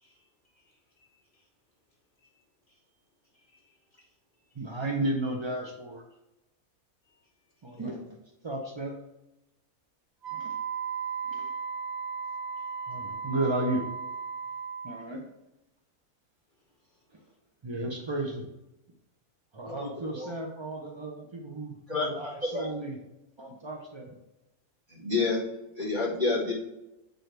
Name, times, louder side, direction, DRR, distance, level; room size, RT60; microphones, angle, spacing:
voice 1, 0.0-1.1 1.3-1.4 2.2-2.3 2.7-2.8 3.3-3.7 4.5-4.6 7.7-8.0 12.6-13.0, left 4 dB, 35° left, -3 dB, 1.3 m, -59 dB
voice 2, 4.6-6.0 7.6-8.0 8.4-9.0 10.3-10.5 11.3-11.5 12.9-13.8 14.8-15.2 17.6-18.5 19.5-23.0 23.4-24.2, right 2 dB, 45° right, 1 dB, 0.3 m, -33 dB
Wind instrument woodwind instrument, 10.2-15.0, right 6 dB, 65° right, 1.6 m, -35 dB
voice 3, 19.7-20.3 21.9-22.1 22.5-22.7 24.9-25.4 25.8-26.5, left 3 dB, 30° right, -4 dB, 2.1 m, -29 dB
7.6 x 4.5 x 3.3 m, 0.93 s
omnidirectional pair, 1.6 m